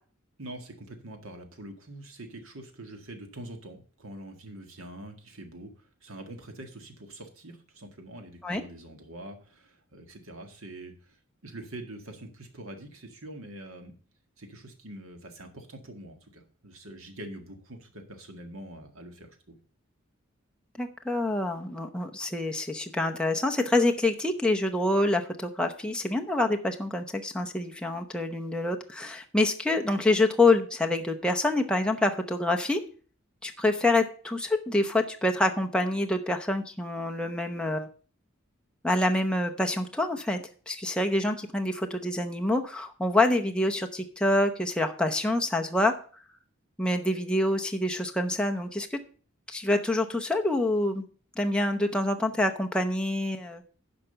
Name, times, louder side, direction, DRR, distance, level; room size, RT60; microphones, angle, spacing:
voice 1, 0.4-14.0 14.4-19.6, right 1 dB, 85° right, 5 dB, 1.9 m, -44 dB
voice 2, 20.8-32.8 33.4-37.9 38.8-40.4 40.7-45.9 46.8-49.0 49.5-51.1 51.4-53.6, left 2 dB, 5° left, 3 dB, 0.8 m, -26 dB
10.5 x 5.3 x 6.7 m, 0.42 s
head